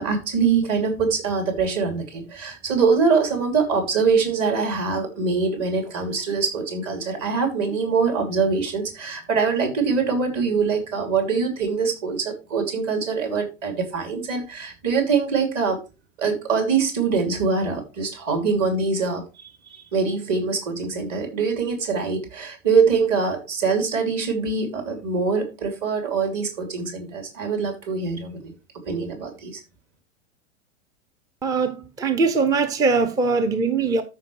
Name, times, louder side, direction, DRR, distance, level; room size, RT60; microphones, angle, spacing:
voice 1, 0.0-15.8 16.2-19.2 19.7-28.5 28.9-29.6, right 5 dB, 35° right, 3.0 m, -23 dB
voice 2, 31.4-34.0, right 4 dB, 10° right, 0.5 m, -21 dB
13.5 x 5.3 x 3.2 m
figure-of-eight pair, 95°, 39 cm